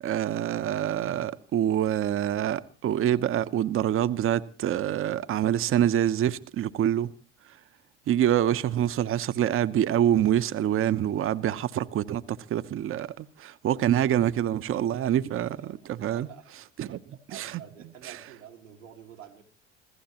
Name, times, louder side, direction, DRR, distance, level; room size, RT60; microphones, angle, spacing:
voice 1, 0.0-7.1 7.5-7.6 8.1-16.3 16.8-17.0 17.3-17.6 18.0-18.2, right 11 dB, 35° right, 0.8 m, -26 dB
voice 2, 15.5-16.5 17.1-19.4, right 9 dB, 90° right, 1.9 m, -48 dB
27.0 x 16.0 x 2.9 m
hypercardioid pair, 65°, 36 cm